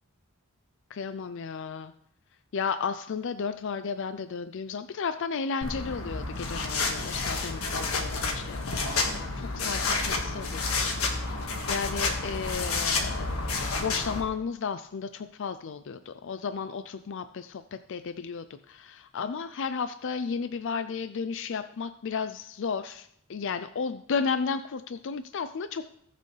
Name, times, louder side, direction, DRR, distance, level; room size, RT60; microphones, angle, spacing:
voice 1, 1.0-1.9 2.5-11.2 11.7-13.3 13.8-25.8, left 5 dB, 60° left, 11 dB, 0.4 m, -33 dB
sound 1, 5.6-14.2, left 3 dB, 80° left, 1.7 m, -30 dB
19.5 x 6.7 x 3.3 m, 0.72 s
head